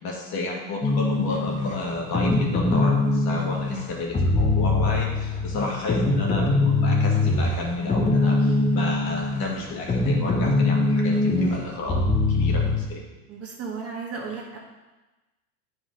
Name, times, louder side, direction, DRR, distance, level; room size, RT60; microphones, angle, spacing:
voice 1, 0.0-12.0 12.3-13.0, left 2 dB, 50° left, -2 dB, 2.1 m, -32 dB
sound 1, 0.8-12.9, left 2 dB, 15° left, 0.9 m, -23 dB
voice 2, 13.3-14.6, right 5 dB, 30° right, -2 dB, 1.6 m, -34 dB
9.1 x 5.3 x 3.8 m, 1.1 s
supercardioid pair, 115°, 47 cm